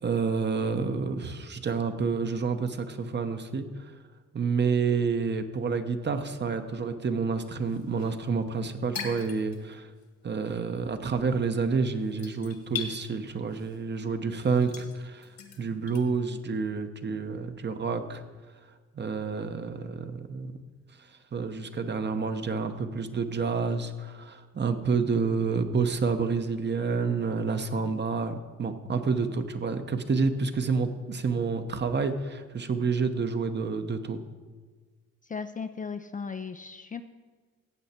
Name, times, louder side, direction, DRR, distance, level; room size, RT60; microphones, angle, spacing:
voice 1, 0.0-3.9 4.3-9.9 10.2-15.3 15.6-18.2 18.9-20.6 21.3-34.2, right 5 dB, 35° right, 8 dB, 0.9 m, -29 dB
sound 1, 7.4-10.1 10.3-16.0, left 6 dB, 65° left, 1.9 m, -41 dB
voice 2, 35.2-37.0, left 5 dB, 25° left, 9 dB, 0.5 m, -36 dB
15.0 x 8.0 x 4.4 m, 1.4 s
cardioid pair, 90°, 30 cm